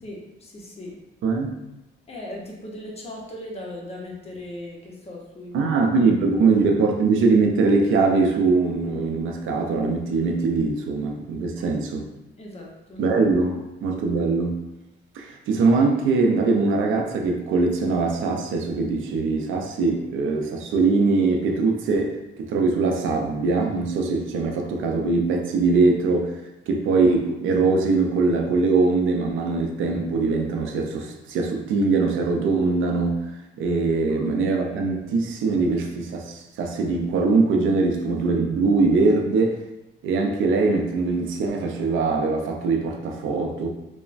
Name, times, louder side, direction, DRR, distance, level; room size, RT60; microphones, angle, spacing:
voice 1, 0.0-1.0 2.1-5.7 11.6-11.7 12.0-12.1 12.4-13.0 13.4-13.6 34.1-34.3, left 1 dB, 30° left, -1 dB, 0.7 m, -38 dB
voice 2, 1.2-1.6 5.5-12.1 13.0-14.6 15.2-26.4 26.7-33.3 33.6-39.6 40.0-43.7, right 3 dB, 80° right, 2 dB, 0.5 m, -22 dB
3.0 x 2.1 x 2.5 m, 0.94 s
cardioid pair, 90°, 20 cm